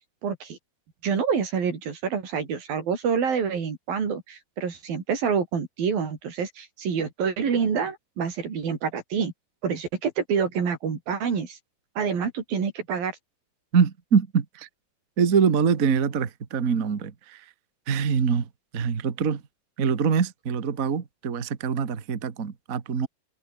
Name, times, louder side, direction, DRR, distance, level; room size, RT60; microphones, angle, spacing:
voice 1, 0.2-0.6 1.0-9.3 9.6-11.6 12.0-13.1, right 6 dB, 60° right, 5.8 m, -27 dB
voice 2, 13.7-14.7 15.2-17.4 17.9-18.5 18.7-19.4 19.8-23.1, right 6 dB, 85° right, 0.7 m, -24 dB
omnidirectional pair, 4.6 m